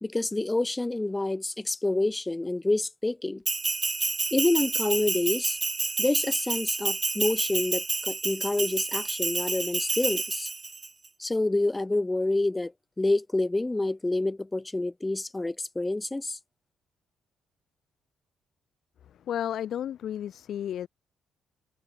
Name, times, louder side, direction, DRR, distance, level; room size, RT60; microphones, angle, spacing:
voice 1, 0.0-3.4 4.3-5.6 6.0-10.5 11.2-12.7 13.0-16.4, left 2 dB, 20° left, 1.0 m, -28 dB
Bell, 3.4-10.9, right 3 dB, 30° right, 0.7 m, -29 dB
voice 2, 19.0-20.9, left 10 dB, 65° left, 0.6 m, -33 dB
hypercardioid pair, 50°, 0 cm